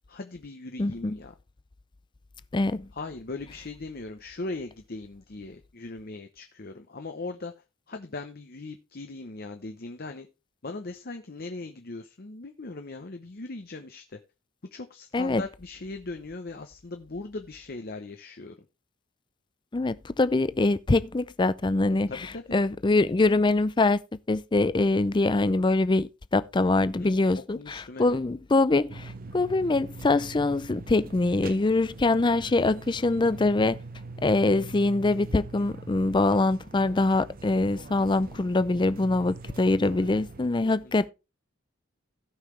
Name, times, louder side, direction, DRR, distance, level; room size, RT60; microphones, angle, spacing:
voice 1, 0.1-1.3 2.9-7.5 7.9-10.3 10.6-14.2 14.7-18.7 22.1-22.6 26.9-28.2 40.6-40.9, left 3 dB, 45° left, 0.8 m, -39 dB
voice 2, 0.8-1.2 2.5-2.9 15.1-15.4 19.7-22.1 22.5-24.0 24.3-33.8 34.2-41.1, left 2 dB, 20° left, 0.4 m, -24 dB
sound 1, 28.9-40.5, right 3 dB, 45° right, 0.7 m, -43 dB
16.5 x 5.7 x 3.2 m
head